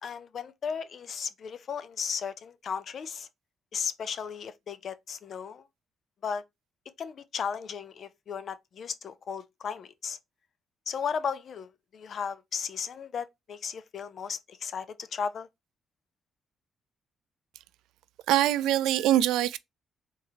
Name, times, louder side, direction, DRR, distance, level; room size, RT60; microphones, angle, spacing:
voice 1, 0.0-3.3 3.7-5.6 6.2-6.4 7.0-10.2 10.9-15.5, left 6 dB, 55° left, 0.5 m, -35 dB
voice 2, 18.3-19.6, right 13 dB, 90° right, 0.3 m, -23 dB
3.7 x 2.7 x 4.2 m
cardioid pair, 90°, 0 cm